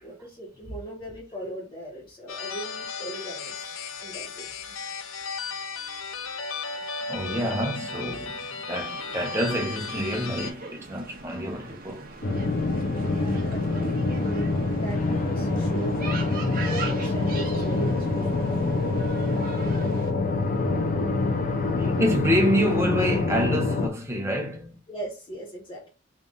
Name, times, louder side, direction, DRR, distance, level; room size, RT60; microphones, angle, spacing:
voice 1, 0.0-3.7 4.0-4.5 12.8-18.4 24.9-25.9, right 1 dB, 25° left, 1.1 m, -39 dB
sound 1, 2.3-10.5, left 4 dB, 90° left, 0.6 m, -35 dB
voice 2, 7.1-12.1 21.8-24.8, equal, 15° right, 0.9 m, -27 dB
sound 2, 8.8-20.1, right 3 dB, 45° right, 0.8 m, -40 dB
sound 3, 12.2-23.9, left 3 dB, 45° left, 0.6 m, -25 dB
3.6 x 2.5 x 3.8 m
head